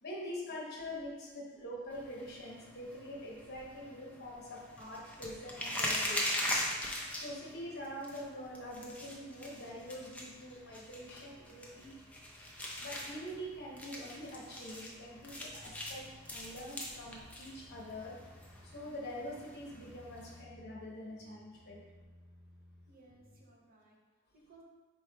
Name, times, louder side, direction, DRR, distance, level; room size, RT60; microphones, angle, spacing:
voice 1, 0.0-6.5 7.1-11.9 12.8-16.0 16.3-18.2 18.6-21.8, left 1 dB, 50° left, -4 dB, 1.0 m, -45 dB
sound 1, 1.9-20.4, left 1 dB, 5° left, 0.5 m, -42 dB
sound 2, 15.5-16.6 17.0-18.7 19.1-20.8 21.0-23.4, equal, 15° right, 1.1 m, -59 dB
voice 2, 22.9-24.6, right 2 dB, 45° right, -2 dB, 0.7 m, -62 dB
4.5 x 4.4 x 2.3 m, 1.3 s
head